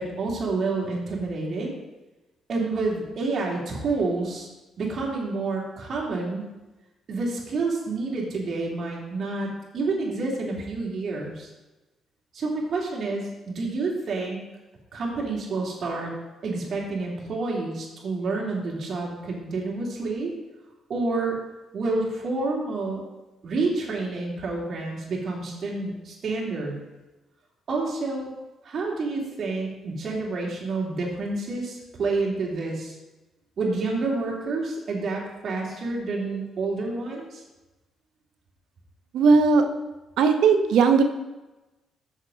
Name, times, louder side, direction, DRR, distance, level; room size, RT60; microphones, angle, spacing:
voice 1, 0.0-1.8 2.5-4.5 4.8-6.5 7.1-11.5 12.3-14.4 14.9-16.1 16.4-20.3 20.9-21.4 21.7-23.0 23.4-26.7 27.7-28.3 28.6-32.9 33.6-37.4, right 3 dB, 55° right, -2 dB, 2.5 m, -29 dB
voice 2, 39.1-39.6 40.2-41.0, right 5 dB, 80° right, 7 dB, 0.9 m, -17 dB
6.7 x 6.5 x 5.1 m, 1.1 s
cardioid pair, 90°, 0 cm